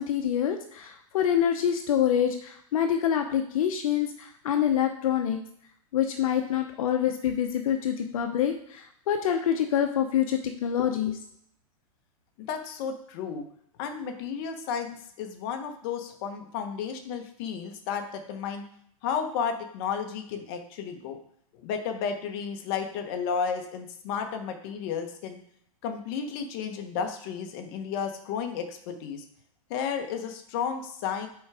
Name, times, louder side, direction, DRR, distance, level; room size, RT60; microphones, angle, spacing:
voice 1, 0.0-5.4 5.9-11.2, left 9 dB, 70° left, 6 dB, 0.8 m, -26 dB
voice 2, 12.5-13.5 13.8-18.6 19.0-21.2 21.6-25.4 25.8-29.2 29.7-31.3, left 6 dB, 40° left, 5 dB, 1.1 m, -32 dB
6.3 x 4.5 x 4.8 m, 0.68 s
hypercardioid pair, 150°, 19 cm